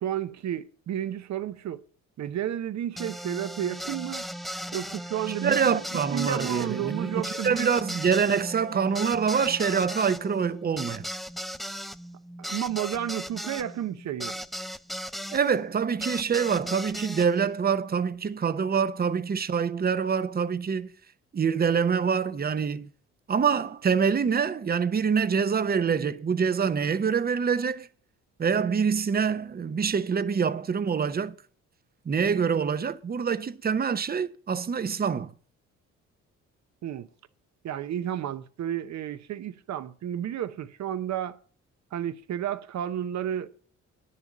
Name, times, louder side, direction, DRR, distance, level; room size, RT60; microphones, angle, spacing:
voice 1, 0.0-1.8 2.2-4.3 4.7-5.8 6.1-7.7 12.4-14.4 36.8-37.1 37.6-41.4 41.9-43.5, right 10 dB, 65° right, 0.9 m, -32 dB
sound 1, 3.0-15.4 16.0-17.3, equal, ahead, 0.4 m, -37 dB
voice 2, 5.3-11.1 15.3-20.9 21.3-22.9 23.3-27.9 28.4-31.4 32.0-35.3, right 6 dB, 30° right, 0.7 m, -25 dB
10.0 x 6.9 x 7.3 m
cardioid pair, 90°, 30 cm